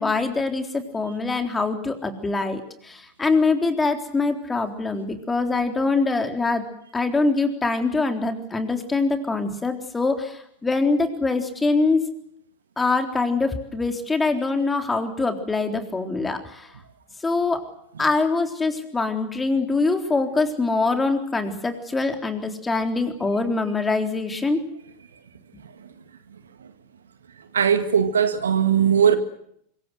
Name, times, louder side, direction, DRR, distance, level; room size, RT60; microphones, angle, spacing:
voice 1, 0.0-6.7 6.9-12.1 12.8-16.7 17.2-17.6 18.0-24.6, left 3 dB, 15° left, 3.7 m, -24 dB
voice 2, 27.5-29.2, right 8 dB, 75° right, 2.0 m, -19 dB
25.5 x 23.0 x 7.8 m
figure-of-eight pair, 90°, 0 cm